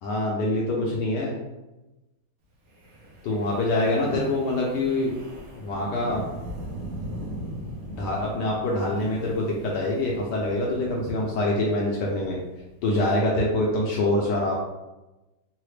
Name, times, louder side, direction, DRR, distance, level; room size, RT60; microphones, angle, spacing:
voice 1, 0.0-1.3 3.2-5.1 5.6-6.3 7.9-12.4 12.8-14.5, left 1 dB, 70° left, -3 dB, 1.1 m, -25 dB
Wind, 2.7-12.9, right 1 dB, 65° right, 1.3 m, -40 dB
3.8 x 2.1 x 3.1 m, 1.0 s
omnidirectional pair, 2.2 m